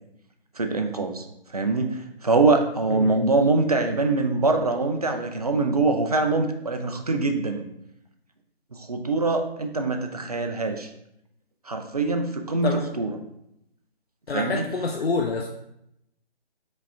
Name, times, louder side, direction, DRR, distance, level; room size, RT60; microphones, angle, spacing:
voice 1, 0.6-1.2 1.5-7.7 8.7-10.9 11.7-13.1 14.3-14.7, right 3 dB, 40° right, 5 dB, 0.4 m, -24 dB
voice 2, 14.3-15.5, left 4 dB, 80° left, 2 dB, 0.6 m, -27 dB
5.1 x 2.7 x 3.4 m, 0.79 s
figure-of-eight pair, 155°, 30 cm